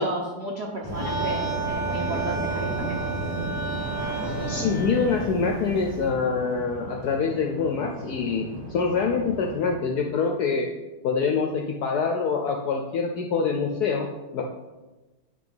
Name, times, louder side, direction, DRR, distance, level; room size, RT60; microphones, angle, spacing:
voice 1, 0.0-3.0, right 1 dB, 75° right, -1 dB, 0.5 m, -32 dB
sound 1, 0.8-9.7, right 1 dB, 55° right, 2.4 m, -34 dB
sound 2, 0.9-6.1, right 5 dB, 5° right, 1.0 m, -33 dB
voice 2, 4.4-10.7 11.0-14.4, left 5 dB, 75° left, 2 dB, 0.9 m, -25 dB
8.7 x 3.4 x 5.2 m, 1.1 s
omnidirectional pair, 2.3 m